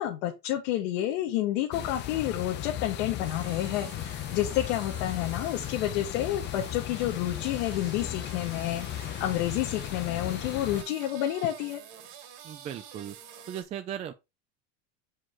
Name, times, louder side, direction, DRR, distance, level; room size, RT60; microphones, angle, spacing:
voice 1, 0.0-11.8, left 13 dB, 70° left, 1.4 m, -30 dB
sound 1, 1.7-10.8, left 12 dB, 30° left, 0.5 m, -36 dB
sound 2, 3.2-13.6, right 9 dB, 65° right, 2.4 m, -49 dB
voice 2, 12.4-13.2 13.5-14.1, right 10 dB, 20° right, 0.3 m, -37 dB
6.1 x 5.1 x 3.6 m
supercardioid pair, 150°, 36 cm